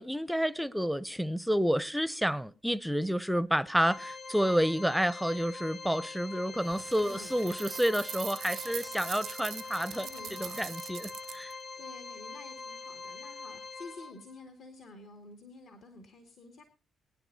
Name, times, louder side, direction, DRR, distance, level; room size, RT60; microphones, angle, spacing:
voice 1, 0.0-10.1 10.4-11.5, equal, ahead, 0.6 m, -30 dB
Organ, 3.8-14.4, left 4 dB, 35° left, 0.9 m, -44 dB
sound 1, 6.6-11.5, right 10 dB, 75° right, 0.6 m, -42 dB
voice 2, 7.0-7.4 9.9-10.7 11.8-16.6, left 3 dB, 70° left, 2.3 m, -50 dB
21.5 x 10.5 x 2.7 m
cardioid pair, 90°, 0 cm